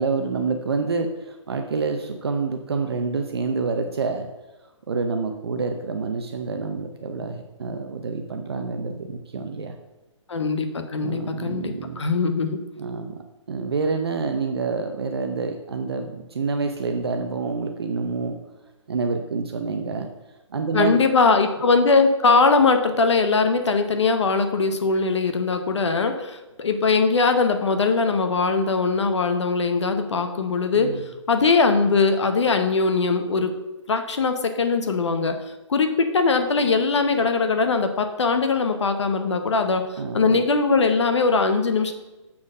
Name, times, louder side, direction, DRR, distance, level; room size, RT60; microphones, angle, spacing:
voice 1, 0.0-4.3 4.9-9.7 11.0-12.0 12.8-18.4 18.9-20.1 20.5-21.0 30.7-31.1 40.0-40.4, right 4 dB, 50° right, 5 dB, 0.6 m, -27 dB
voice 2, 10.3-12.6 20.7-31.0 31.3-33.6 33.9-35.4 35.7-41.9, left 4 dB, 60° left, 7 dB, 0.9 m, -21 dB
7.1 x 4.4 x 6.2 m, 1.1 s
hypercardioid pair, 175°, 16 cm